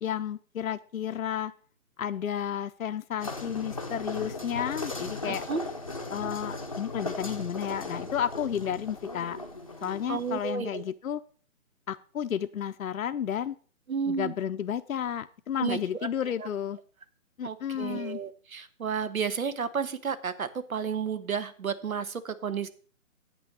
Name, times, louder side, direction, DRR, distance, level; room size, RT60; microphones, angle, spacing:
voice 1, 0.0-1.5 2.0-5.4 6.1-9.4 9.8-11.2 11.9-13.6 14.1-16.8 17.4-18.2, left 9 dB, 70° left, 10 dB, 0.6 m, -32 dB
sound 1, 3.2-10.5, left 2 dB, 25° left, 0.7 m, -37 dB
voice 2, 5.3-5.6 10.1-10.8 13.9-14.3 15.6-16.1 16.4-16.5 17.4-22.7, right 6 dB, 75° right, 13 dB, 1.3 m, -32 dB
9.1 x 6.1 x 6.6 m, 0.43 s
hypercardioid pair, 175°, 42 cm